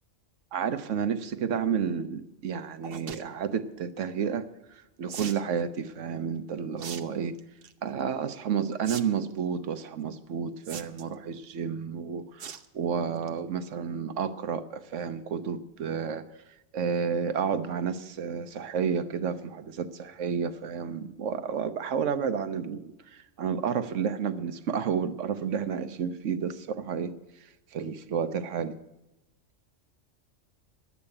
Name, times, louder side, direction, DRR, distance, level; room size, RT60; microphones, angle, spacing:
voice 1, 0.5-4.5 5.0-7.4 7.8-16.3 16.7-22.9 23.4-27.1 27.7-28.8, right 7 dB, 75° right, 11 dB, 1.2 m, -31 dB
sound 1, 2.8-3.2 5.1-5.4 6.8-7.0 7.4-7.7 8.8-9.0 9.3-9.4 10.6-11.1 12.4-12.7 13.1-13.3 13.7-13.8 13.9-14.0, right 7 dB, 55° right, 0.9 m, -39 dB
11.0 x 8.4 x 9.6 m, 0.95 s
omnidirectional pair, 1.3 m